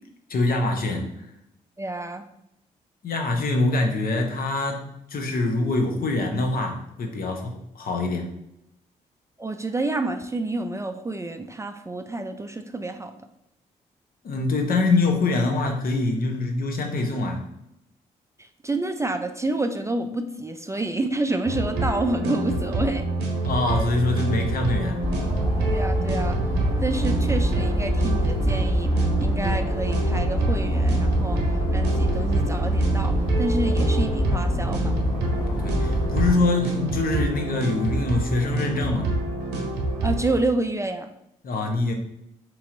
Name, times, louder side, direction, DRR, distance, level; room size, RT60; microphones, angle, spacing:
voice 1, 0.3-1.0 3.0-8.3 14.2-17.4 23.4-25.0 31.4-31.6 35.6-39.1 41.4-41.9, left 2 dB, 55° left, 3 dB, 0.9 m, -24 dB
voice 2, 1.8-2.3 9.4-13.1 18.6-23.0 25.7-26.4 26.8-31.4 31.7-35.0 40.0-41.1, right 2 dB, 15° right, 7 dB, 0.4 m, -28 dB
neon goodbye loop, 21.5-40.4, right 2 dB, 80° right, 0.7 m, -26 dB
sound 1, 25.0-36.3, left 1 dB, 25° left, 1.4 m, -26 dB
3.1 x 2.9 x 3.7 m, 0.80 s
hypercardioid pair, 45°, 18 cm